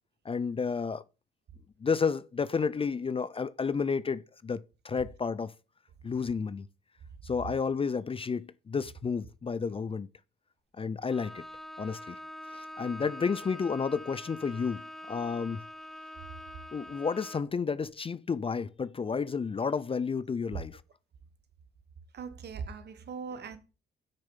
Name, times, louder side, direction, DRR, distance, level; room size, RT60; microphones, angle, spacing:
voice 1, 0.3-1.0 1.8-5.5 6.0-6.7 7.2-10.1 10.8-11.4 11.8-12.1 12.5-15.6 16.7-20.8, left 5 dB, 30° left, 0.5 m, -31 dB
Bowed string instrument, 11.1-17.6, left 1 dB, ahead, 0.9 m, -45 dB
voice 2, 22.1-23.6, right 5 dB, 55° right, 1.5 m, -40 dB
8.2 x 6.6 x 5.6 m
cardioid pair, 90°, 20 cm